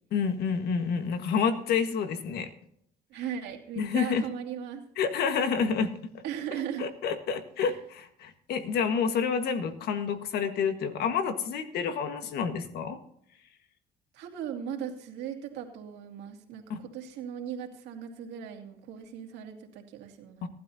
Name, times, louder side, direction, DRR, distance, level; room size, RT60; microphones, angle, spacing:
voice 1, 0.1-2.5 3.7-4.3 5.0-6.2 6.8-13.0 16.7-16.8 20.4-20.5, left 6 dB, 70° left, 8 dB, 1.6 m, -29 dB
voice 2, 3.1-4.8 6.2-6.9 7.6-7.7 14.1-20.5, right 8 dB, 85° right, 2 dB, 2.5 m, -38 dB
18.5 x 12.0 x 2.8 m, 0.69 s
cardioid pair, 110°, 17 cm